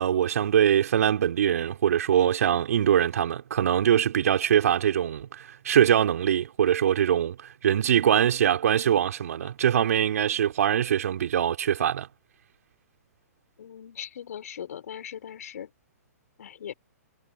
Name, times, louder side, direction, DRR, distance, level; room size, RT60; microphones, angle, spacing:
voice 1, 0.0-12.1, right 9 dB, 70° right, 3.9 m, -23 dB
voice 2, 13.6-15.7 16.4-16.7, left 9 dB, 70° left, 4.5 m, -39 dB
hypercardioid pair, 135°, 9 cm